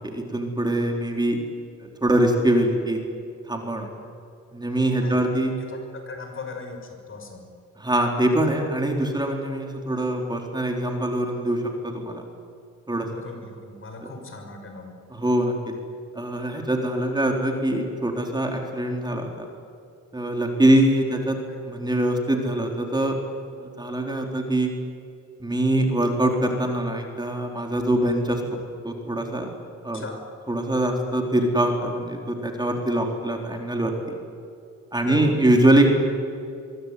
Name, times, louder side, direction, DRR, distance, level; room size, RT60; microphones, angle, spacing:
voice 1, 0.0-1.4 2.0-3.0 3.5-3.9 4.5-5.5 7.8-12.2 12.9-13.1 14.0-14.1 15.1-15.7 16.1-19.5 20.1-21.4 21.6-23.2 23.5-24.7 25.4-28.4 28.8-29.5 29.8-30.0 30.5-34.2 34.9-35.9, right 1 dB, 15° right, 2 dB, 4.2 m, -23 dB
voice 2, 5.0-7.4 13.0-15.0 21.5-21.6 29.9-30.2 35.1-35.6, left 4 dB, 45° left, 5 dB, 6.0 m, -39 dB
24.0 x 23.0 x 9.5 m, 2.5 s
cardioid pair, 90°, 30 cm